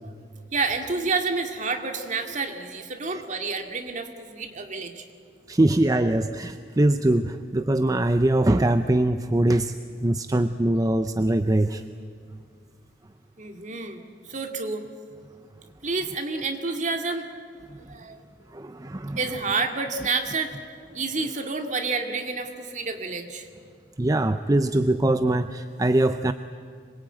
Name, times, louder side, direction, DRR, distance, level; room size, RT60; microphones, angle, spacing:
voice 1, 0.5-5.0 13.4-14.8 15.8-17.3 17.9-18.2 19.2-20.6 20.9-23.5, right 4 dB, 45° right, 4 dB, 2.2 m, -29 dB
voice 2, 5.5-9.7 10.0-11.8 18.5-19.2 24.0-26.3, right 1 dB, 20° right, 9 dB, 0.6 m, -22 dB
25.5 x 22.0 x 9.1 m, 2.1 s
head